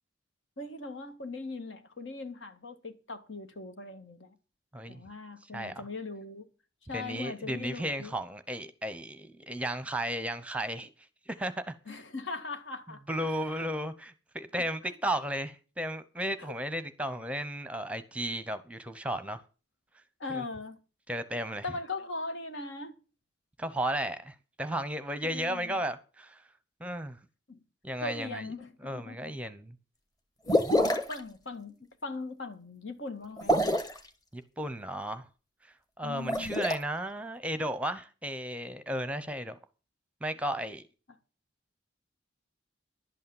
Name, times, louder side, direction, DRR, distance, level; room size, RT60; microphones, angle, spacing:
voice 1, 0.6-4.4 4.9-6.5 6.9-8.1 11.9-13.7 14.8-14.9 16.4-16.5 20.2-20.8 21.6-22.9 25.3-25.8 27.5-27.6 28.0-29.5 31.1-33.6 36.0-36.7, left 3 dB, 75° left, 1.8 m, -40 dB
voice 2, 5.4-5.9 6.9-10.9 11.3-11.8 13.1-19.4 20.3-20.4 21.1-21.6 23.6-26.4 26.8-27.2 27.8-28.5 28.8-29.7 34.3-35.3 35.6-39.6 40.2-40.8, right 1 dB, 5° right, 0.8 m, -34 dB
sound 1, 30.5-31.2 33.4-34.0 36.1-36.8, equal, 20° left, 1.3 m, -26 dB
11.5 x 8.5 x 7.1 m
head